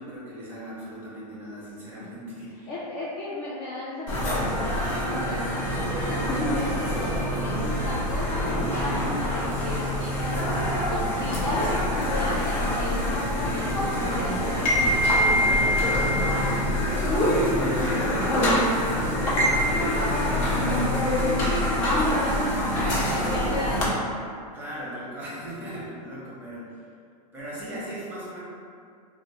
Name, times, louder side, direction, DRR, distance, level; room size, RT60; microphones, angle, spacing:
voice 1, 0.0-2.7 11.5-12.5 16.8-21.7 22.8-23.4 24.5-26.9 27.3-28.4, right 1 dB, 10° right, -8 dB, 0.9 m, -37 dB
voice 2, 2.7-5.6 5.9-16.4 22.0-22.5 22.9-24.0 25.6-25.7, left 1 dB, 30° left, -7 dB, 0.4 m, -35 dB
sound 1, 4.1-23.9, left 1 dB, 55° left, 0.9 m, -25 dB
3.5 x 2.0 x 2.9 m, 2.3 s
supercardioid pair, 145°, 21 cm